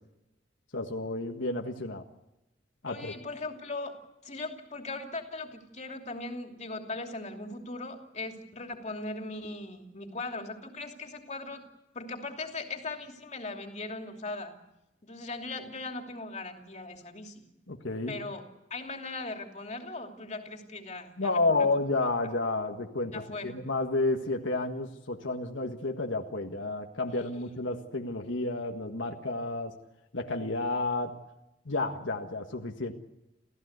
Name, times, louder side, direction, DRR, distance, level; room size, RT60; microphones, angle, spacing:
voice 1, 0.7-2.0 2.8-3.1 17.7-18.2 21.2-29.8 30.1-31.1 31.6-32.9, left 2 dB, 85° left, 3 dB, 1.7 m, -31 dB
voice 2, 2.9-11.7 11.9-14.5 15.0-17.5 18.1-18.4 18.7-21.7 23.1-23.6 27.1-27.4, left 3 dB, 40° left, 3 dB, 2.8 m, -39 dB
28.5 x 15.0 x 8.1 m, 0.94 s
head